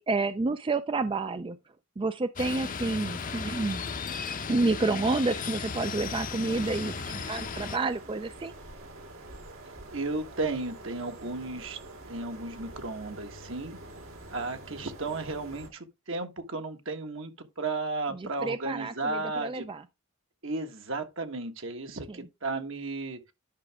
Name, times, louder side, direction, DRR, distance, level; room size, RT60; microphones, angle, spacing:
voice 1, 0.0-1.6 2.0-3.8 4.5-8.5 18.1-19.8 22.1-22.2, right 3 dB, 25° right, 0.4 m, -29 dB
sound 1, 2.4-7.8, left 5 dB, 40° left, 0.7 m, -35 dB
sound 2, 6.4-15.7, right 1 dB, 85° right, 2.7 m, -46 dB
voice 2, 9.9-11.8 12.1-13.8 14.3-19.7 20.4-23.3, right 3 dB, 65° right, 1.5 m, -34 dB
10.5 x 6.1 x 3.5 m
head